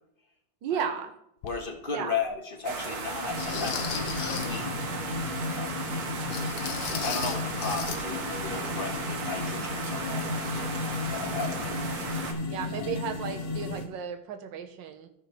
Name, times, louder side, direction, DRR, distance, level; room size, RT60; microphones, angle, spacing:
voice 1, 0.6-1.1 1.9-2.2 12.5-15.1, right 8 dB, 65° right, 6 dB, 1.6 m, -34 dB
sound 1, 1.4-1.6 2.2-2.3 3.4-4.6 6.3-8.0 8.3-8.5 8.9-9.0, left 8 dB, 85° left, 1.8 m, -36 dB
voice 2, 1.4-4.7 5.5-5.9 6.8-10.7 11.0-11.9 12.8-12.9, left 4 dB, 30° left, 2 dB, 1.3 m, -35 dB
sound 2, 2.6-12.3, right 4 dB, 85° right, 2.3 m, -36 dB
sound 3, 3.3-13.9, left 3 dB, 55° left, 2.1 m, -34 dB
15.0 x 6.3 x 3.2 m, 0.76 s
omnidirectional pair, 2.4 m